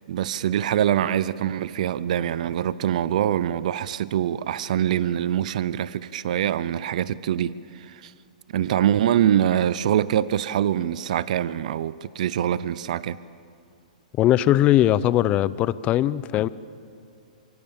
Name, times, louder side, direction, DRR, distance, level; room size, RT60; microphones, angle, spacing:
voice 1, 0.1-8.1 8.5-13.2, right 10 dB, 60° right, 0.7 m, -24 dB
voice 2, 14.2-16.5, left 13 dB, 30° left, 0.7 m, -20 dB
27.5 x 24.5 x 7.2 m
hypercardioid pair, 135°, 4 cm